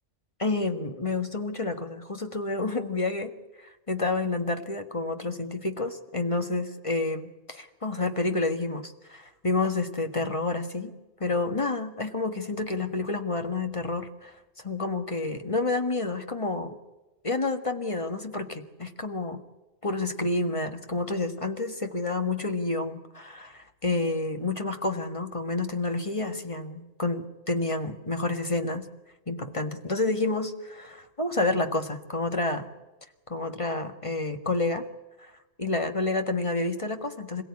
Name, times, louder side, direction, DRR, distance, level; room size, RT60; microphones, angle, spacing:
voice 1, 0.4-3.3 3.9-10.9 11.2-14.3 14.6-16.8 17.2-19.4 19.8-28.9 29.3-32.7 33.3-34.9 35.6-37.4, left 3 dB, 25° left, 6 dB, 1.6 m, -29 dB
27.0 x 16.5 x 9.7 m, 1.1 s
omnidirectional pair, 1.4 m